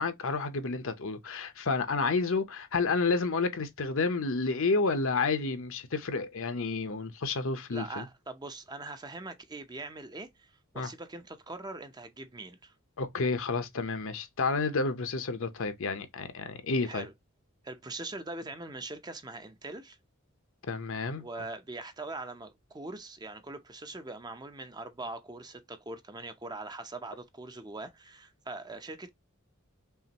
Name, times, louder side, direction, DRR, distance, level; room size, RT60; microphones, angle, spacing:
voice 1, 0.0-8.1 10.8-10.9 13.0-17.1 20.7-21.2, left 4 dB, 65° left, 0.8 m, -30 dB
voice 2, 7.7-12.7 16.8-17.1 17.6-20.0 21.2-29.1, right 2 dB, 20° right, 0.6 m, -42 dB
5.6 x 2.5 x 2.9 m
head